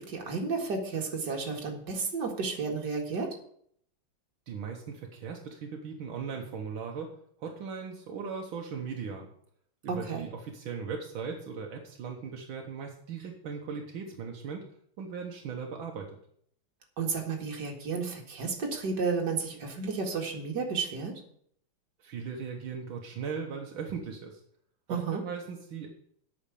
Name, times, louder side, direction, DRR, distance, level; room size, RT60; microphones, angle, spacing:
voice 1, 0.0-3.3 9.9-10.3 17.0-21.1 24.9-25.2, right 4 dB, 60° right, 1 dB, 2.5 m, -32 dB
voice 2, 4.5-7.1 7.4-9.3 9.8-14.6 15.0-16.2 22.0-24.4 24.9-25.9, right 6 dB, 80° right, 2 dB, 1.9 m, -38 dB
8.6 x 6.4 x 8.4 m, 0.66 s
omnidirectional pair, 2.2 m